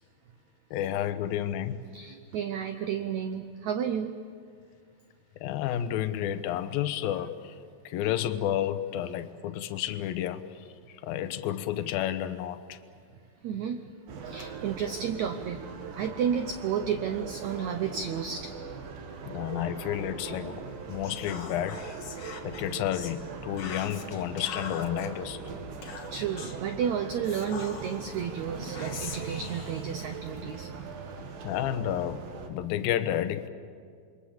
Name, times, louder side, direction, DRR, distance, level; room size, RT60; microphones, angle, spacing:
voice 1, 0.7-1.8 5.4-7.5 7.9-10.4 11.0-12.8 19.3-20.6 20.9-21.8 22.4-25.4 31.4-32.2 32.5-33.5, left 11 dB, 75° left, 10 dB, 2.7 m, -31 dB
voice 2, 1.9-4.2 13.4-13.8 14.2-15.6 15.9-18.5 26.1-30.7, right 7 dB, 80° right, 8 dB, 1.6 m, -32 dB
sound 1, 14.1-32.5, right 5 dB, 65° right, 3.4 m, -40 dB
Whispering, 21.0-23.2 23.6-25.1 25.8-26.6 27.2-28.1 28.7-30.6, left 6 dB, 50° left, 1.6 m, -43 dB
28.5 x 22.5 x 7.3 m, 2.1 s
omnidirectional pair, 4.5 m